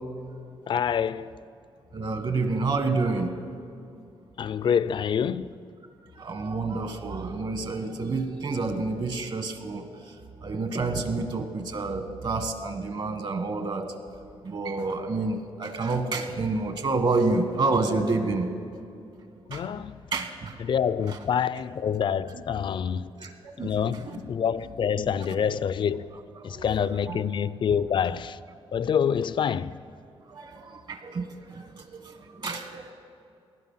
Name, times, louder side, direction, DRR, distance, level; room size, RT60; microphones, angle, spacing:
voice 1, 0.7-1.3 4.4-5.6 19.5-20.0 20.6-23.1 23.6-26.1 26.4-28.4 28.7-29.8, left 7 dB, 50° left, 0.4 m, -26 dB
voice 2, 1.9-3.3 6.1-10.1 10.4-13.9 14.4-18.5 19.5-19.6 20.1-20.6 21.1-21.2 22.3-22.4 23.2-24.2 26.4-26.6 27.1-27.2 30.3-32.9, right 3 dB, 50° right, 1.6 m, -29 dB
19.0 x 12.0 x 5.7 m
cardioid pair, 100°, 10 cm